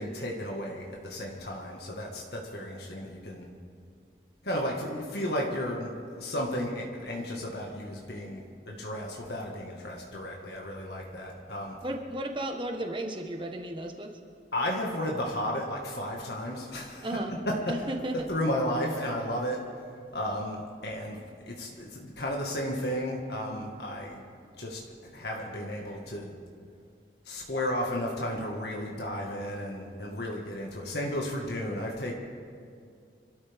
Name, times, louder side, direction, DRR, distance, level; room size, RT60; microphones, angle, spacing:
voice 1, 0.0-3.5 4.4-5.9 6.2-11.8 14.5-17.7 18.3-19.6 20.1-21.2 21.4-24.2 24.6-24.8 25.1-26.3 27.3-32.1, left 1 dB, 65° left, -1 dB, 1.9 m, -33 dB
voice 2, 11.8-14.2 17.0-17.3 17.7-18.2, right 1 dB, 25° right, 4 dB, 1.4 m, -34 dB
26.5 x 13.0 x 3.6 m, 2.3 s
head